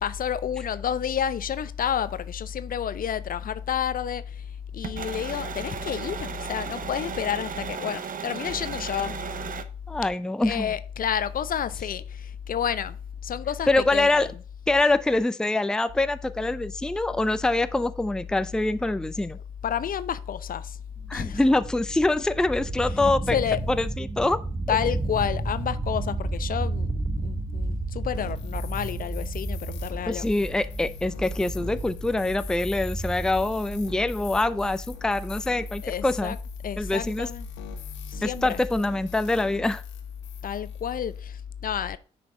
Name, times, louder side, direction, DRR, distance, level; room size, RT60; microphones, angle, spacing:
voice 1, 0.0-9.2 10.4-13.0 13.2-14.3 19.6-20.8 21.1-21.4 23.3-23.6 24.7-26.9 27.2-30.3 35.8-36.4 36.6-37.5 38.1-38.6 40.4-42.0, left 8 dB, 45° left, 0.7 m, -30 dB
sound 1, 4.8-9.6, right 6 dB, 45° right, 0.9 m, -35 dB
voice 2, 9.9-10.7 13.7-14.3 14.7-19.4 21.1-23.4 23.7-24.4 30.1-36.3 36.8-37.3 38.2-39.8, left 2 dB, 5° left, 0.5 m, -25 dB
sound 2, 21.0-38.8, right 2 dB, 15° right, 1.0 m, -33 dB
sound 3, 28.1-41.2, left 11 dB, 70° left, 1.2 m, -47 dB
9.6 x 5.1 x 3.8 m
hypercardioid pair, 40°, 19 cm